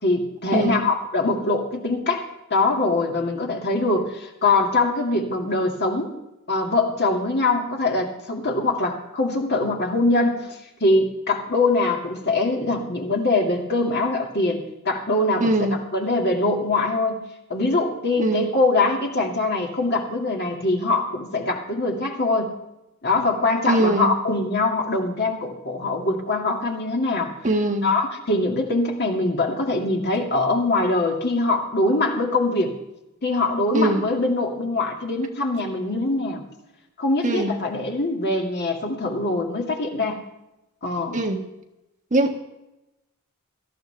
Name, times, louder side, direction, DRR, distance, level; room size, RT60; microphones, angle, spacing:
voice 1, 0.0-2.3 2.5-6.1 6.5-17.2 17.5-22.5 23.0-27.4 27.8-32.8 33.2-36.4 37.0-40.2 40.8-41.2, left 2 dB, 50° left, 1 dB, 2.2 m, -23 dB
voice 2, 0.5-0.8 15.4-15.8 18.2-18.5 23.7-24.2 27.4-27.9 33.7-34.1 37.2-37.6 41.1-41.4 42.1-42.4, right 1 dB, 35° right, 3 dB, 1.5 m, -22 dB
18.5 x 13.5 x 3.4 m, 0.93 s
head